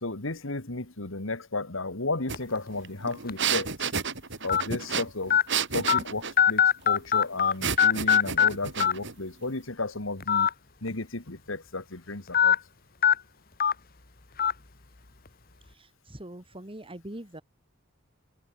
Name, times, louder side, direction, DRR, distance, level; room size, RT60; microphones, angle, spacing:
voice 1, 0.0-3.7 4.4-5.4 5.7-10.5 10.8-12.6, left 2 dB, 75° left, 2.4 m, -33 dB
sound 1, 2.3-2.6 3.3-3.4 4.5-4.6 5.3-5.4 5.9-6.0 6.4-7.5 7.8-8.5 8.8-8.9 10.2-10.5 10.9-11.0 12.3-12.6 13.0-13.1 13.6-13.7 14.4-14.5, left 8 dB, 50° left, 2.0 m, -20 dB
sound 2, 2.3-2.4 2.7-6.4 7.6-9.1, right 6 dB, 65° right, 5.2 m, -31 dB
voice 2, 16.1-17.4, right 1 dB, 25° right, 3.1 m, -41 dB
head